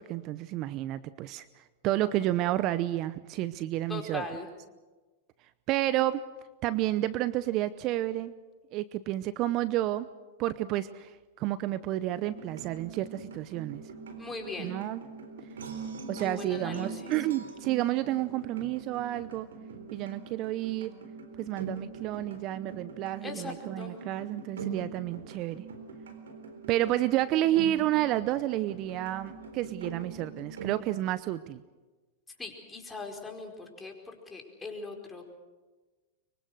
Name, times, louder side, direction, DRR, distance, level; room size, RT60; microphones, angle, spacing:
voice 1, 0.0-4.2 5.7-6.2 6.6-8.3 8.7-10.1 10.4-13.8 14.6-15.0 16.1-19.5 19.9-20.9 21.4-25.6 26.7-31.6, right 14 dB, 45° right, 15 dB, 0.8 m, -30 dB
voice 2, 3.9-4.5 14.2-14.7 16.2-17.1 23.2-23.9 32.4-35.2, left 3 dB, 15° left, 2 dB, 4.8 m, -40 dB
sound 1, 12.2-30.8, right 4 dB, 80° right, 3.8 m, -43 dB
24.5 x 23.5 x 6.4 m, 1.2 s
hypercardioid pair, 105°, 0 cm